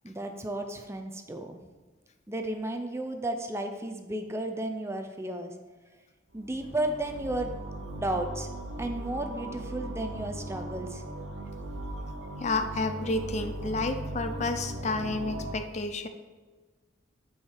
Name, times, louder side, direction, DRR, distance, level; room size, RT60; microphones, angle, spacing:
voice 1, 0.0-1.6 2.3-5.5 6.3-7.5 7.9-8.5 8.8-11.0, right 1 dB, 15° right, 5 dB, 0.5 m, -33 dB
sound 1, 6.3-15.5, right 1 dB, 80° right, 0.8 m, -38 dB
voice 2, 12.4-16.1, left 2 dB, 35° left, 8 dB, 0.5 m, -30 dB
8.6 x 4.8 x 4.5 m, 1.3 s
head